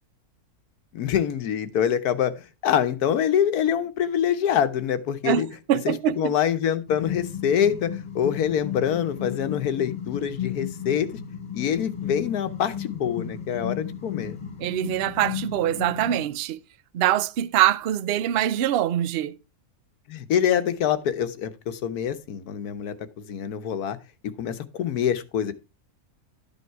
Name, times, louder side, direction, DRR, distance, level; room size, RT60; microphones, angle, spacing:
voice 1, 0.9-5.5 5.8-11.1 11.5-14.4 20.1-24.0 24.4-25.5, left 9 dB, 80° left, 1.4 m, -25 dB
voice 2, 5.2-6.3 14.6-16.6 16.9-19.4, right 12 dB, 65° right, 0.6 m, -24 dB
sound 1, 6.9-16.2, left 8 dB, 35° left, 1.2 m, -34 dB
12.0 x 5.5 x 4.6 m
omnidirectional pair, 1.6 m